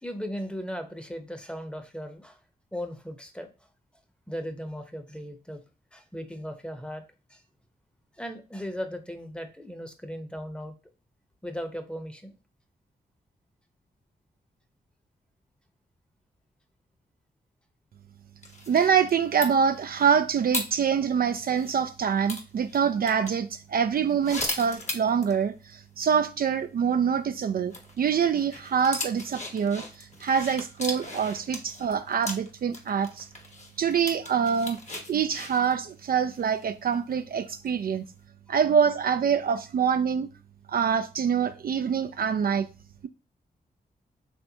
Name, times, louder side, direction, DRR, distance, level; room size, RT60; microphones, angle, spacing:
voice 1, 0.0-2.4 2.7-3.5 4.3-5.6 5.9-7.0 7.3-7.4 8.1-10.7 11.4-12.3, equal, 5° left, 0.8 m, -37 dB
sound 1, 18.4-21.8 22.3-23.3 24.0-25.4 25.7-25.8 26.1-26.2 27.7-37.1 37.6-37.9, left 2 dB, 40° left, 1.1 m, -38 dB
voice 2, 18.7-33.3 33.8-34.8 35.1-38.0 38.5-40.3 40.7-42.7, right 7 dB, 60° right, 0.4 m, -25 dB
4.4 x 3.3 x 2.8 m
cardioid pair, 60°, 18 cm